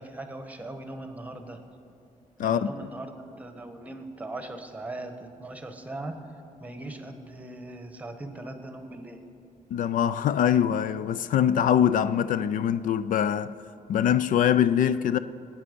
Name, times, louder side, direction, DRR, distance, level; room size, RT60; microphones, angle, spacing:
voice 1, 0.0-1.6 2.4-6.3 6.6-9.2, right 2 dB, 10° right, 1.2 m, -39 dB
voice 2, 9.7-13.6 13.9-15.2, left 9 dB, 75° left, 0.4 m, -23 dB
20.0 x 8.9 x 5.2 m
cardioid pair, 135°, 14 cm